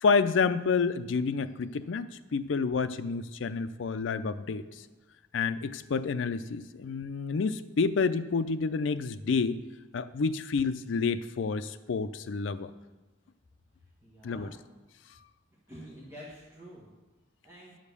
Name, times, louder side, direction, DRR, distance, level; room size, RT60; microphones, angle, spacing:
voice 1, 0.0-4.6 5.3-9.6 9.9-12.7 14.2-14.5, left 4 dB, 75° left, 12 dB, 0.4 m, -29 dB
voice 2, 14.0-14.6 15.7-16.9 17.4-17.8, equal, 15° right, -8 dB, 1.6 m, -47 dB
9.8 x 5.1 x 6.8 m, 1.2 s
head